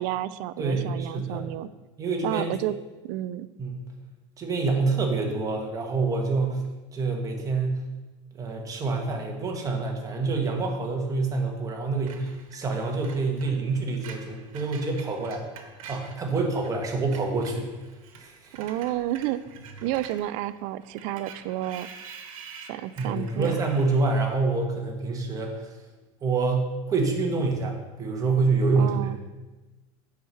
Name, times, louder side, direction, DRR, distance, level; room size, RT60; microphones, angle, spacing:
voice 1, 0.0-1.7 2.2-2.8 3.0-3.5 18.6-19.4 19.8-21.9 22.7-23.5 28.8-29.2, right 14 dB, 50° right, 15 dB, 0.4 m, -30 dB
voice 2, 0.6-1.5 2.0-2.6 3.6-3.9 4.4-6.6 6.9-7.9 8.4-15.4 15.9-17.8 18.2-18.5 23.0-25.6 26.2-29.0, right 3 dB, 20° right, 1 dB, 1.4 m, -27 dB
Screech, 12.1-16.7 17.0-24.5, right 6 dB, 90° right, 1.4 m, -47 dB
9.1 x 4.8 x 5.6 m, 1.2 s
supercardioid pair, 145°, 17 cm